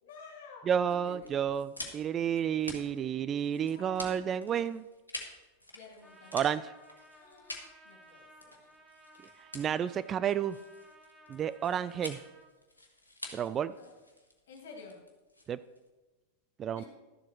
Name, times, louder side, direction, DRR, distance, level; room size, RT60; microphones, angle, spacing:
voice 1, 0.0-1.3 3.6-4.2 5.7-6.3 7.1-8.5 13.8-13.9 14.5-15.0 16.8-16.9, left 4 dB, 60° left, 1 dB, 2.6 m, -51 dB
voice 2, 0.7-4.8 6.3-6.6 9.5-10.6 11.3-12.2 13.3-13.7 15.5-15.6 16.6-16.8, right 8 dB, 25° right, 15 dB, 0.3 m, -31 dB
sound 1, 1.2-15.9, left 1 dB, 85° left, 1.4 m, -48 dB
Trumpet, 6.0-12.5, right 1 dB, 10° right, 1.4 m, -57 dB
12.5 x 7.4 x 4.5 m, 1.2 s
figure-of-eight pair, 90°, 0 cm